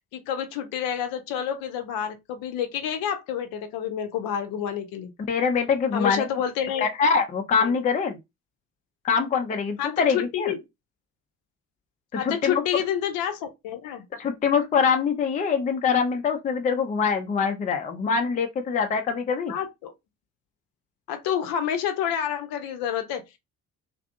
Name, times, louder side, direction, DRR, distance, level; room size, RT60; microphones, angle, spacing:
voice 1, 0.1-5.1 5.9-6.9 7.6-7.7 9.8-10.6 12.2-14.0 19.5-19.9 21.1-23.2, left 9 dB, 55° left, 0.7 m, -29 dB
voice 2, 5.3-6.3 6.8-8.2 9.0-10.5 12.1-12.6 14.2-19.5, left 6 dB, 20° left, 0.4 m, -24 dB
2.6 x 2.5 x 2.4 m
figure-of-eight pair, 45°, 42 cm